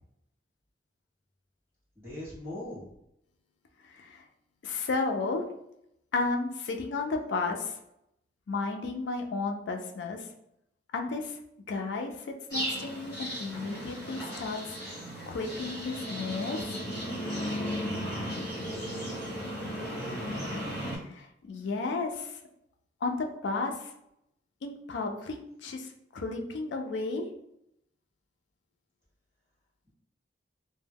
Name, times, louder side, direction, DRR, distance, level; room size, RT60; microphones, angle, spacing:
voice 1, 1.9-2.9 19.0-19.2 19.6-20.3, left 1 dB, 15° right, -9 dB, 0.8 m, -42 dB
voice 2, 3.8-4.2 4.6-5.4 6.1-7.7 8.5-10.3 10.9-11.4 11.7-14.6 15.3-16.6 21.1-22.4 23.0-23.9 24.6-27.3, left 3 dB, 80° left, 3 dB, 0.4 m, -33 dB
sound 1, 12.5-21.0, equal, 20° left, 1.1 m, -35 dB
2.1 x 2.1 x 3.3 m, 0.80 s
head